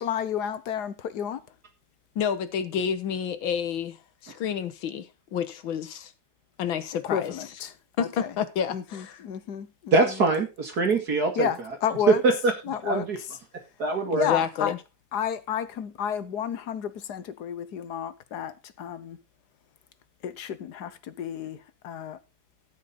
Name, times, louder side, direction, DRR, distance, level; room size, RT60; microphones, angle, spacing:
voice 1, 0.0-1.4 7.1-8.3 8.7-10.2 11.3-12.2 12.6-13.3 14.2-14.7 15.1-19.2 20.2-22.2, left 9 dB, 60° left, 1.4 m, -31 dB
voice 2, 2.2-6.1 6.6-7.3 8.0-9.2 14.1-14.8, left 8 dB, 90° left, 2.0 m, -29 dB
voice 3, 9.9-11.5 12.1-12.3 12.8-13.2 13.8-14.3, right 3 dB, 55° right, 2.3 m, -22 dB
13.0 x 8.6 x 4.0 m
omnidirectional pair, 2.1 m